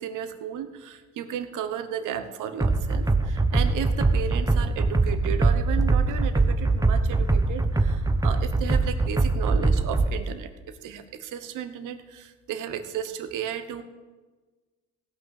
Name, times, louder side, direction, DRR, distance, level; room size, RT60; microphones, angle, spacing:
voice 1, 0.0-13.8, right 9 dB, 85° right, 8 dB, 1.2 m, -34 dB
sound 1, 2.6-10.1, right 3 dB, 10° right, 0.9 m, -22 dB
17.0 x 5.8 x 7.7 m, 1.3 s
cardioid pair, 90°, 30 cm